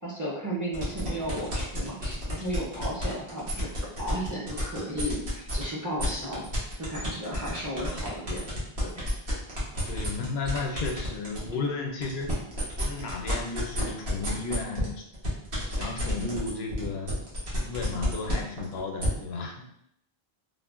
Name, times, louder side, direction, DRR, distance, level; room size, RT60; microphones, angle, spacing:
voice 1, 0.0-6.4 6.8-8.4 8.8-9.0, equal, 25° right, -5 dB, 0.5 m, -34 dB
sound 1, 0.7-5.6 6.0-11.5 11.9-19.1, equal, 65° right, 1.2 m, -32 dB
voice 2, 9.9-12.3 12.7-15.0 15.6-17.1 17.6-19.7, left 4 dB, 80° left, 2 dB, 0.8 m, -33 dB
3.7 x 2.1 x 2.4 m, 0.73 s
omnidirectional pair, 1.0 m